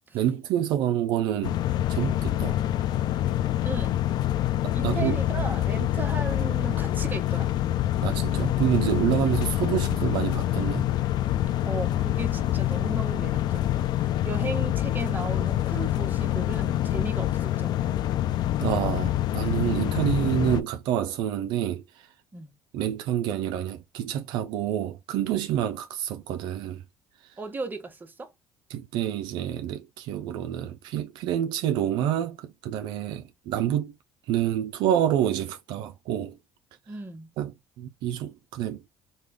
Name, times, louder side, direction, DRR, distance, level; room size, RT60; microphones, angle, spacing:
voice 1, 0.1-1.6 1.9-2.6 4.6-5.2 8.0-10.9 18.6-22.1 22.7-26.8 27.2-27.3 28.7-33.9 34.2-36.4 37.4-38.9, right 11 dB, 75° right, 0.4 m, -28 dB
sound 1, 1.4-20.6, left 13 dB, 60° left, 0.3 m, -26 dB
voice 2, 3.6-3.9 4.7-7.5 11.6-18.0 22.3-22.5 27.4-28.3 36.9-37.3, right 3 dB, 25° right, 1.0 m, -36 dB
3.2 x 2.2 x 3.3 m
supercardioid pair, 75°, 8 cm